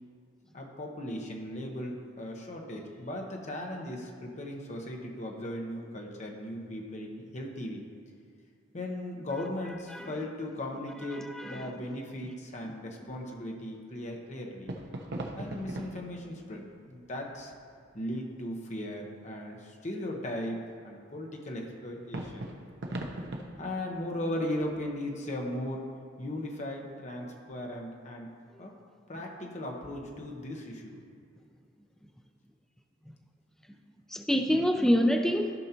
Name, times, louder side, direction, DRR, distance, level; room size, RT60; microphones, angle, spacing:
voice 1, 0.5-7.9 8.7-14.8 15.3-17.5 17.9-22.5 23.6-25.9 26.2-28.3 28.6-28.7 29.1-31.0, left 1 dB, 40° left, 0 dB, 1.0 m, -37 dB
voice 2, 11.1-11.9 12.2-12.3 34.1-35.5, equal, 5° left, 4 dB, 0.4 m, -27 dB
sound 1, 14.6-18.1 22.1-25.4, right 1 dB, 60° right, 0.8 m, -41 dB
14.5 x 5.4 x 2.9 m, 2.3 s
head